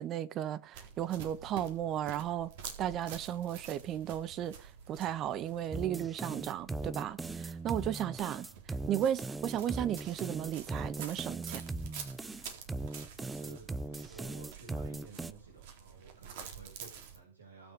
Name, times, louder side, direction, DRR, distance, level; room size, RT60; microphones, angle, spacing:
voice 1, 0.0-2.5 2.8-8.5 8.9-11.6, right 11 dB, 35° right, 1.2 m, -35 dB
sound 1, 0.7-17.2, right 7 dB, 60° right, 3.8 m, -49 dB
sound 2, 5.7-15.3, right 2 dB, 10° right, 0.8 m, -39 dB
voice 2, 8.2-8.6 12.9-17.7, right 4 dB, 85° right, 6.2 m, -54 dB
19.0 x 6.9 x 5.4 m
hypercardioid pair, 105°, 0 cm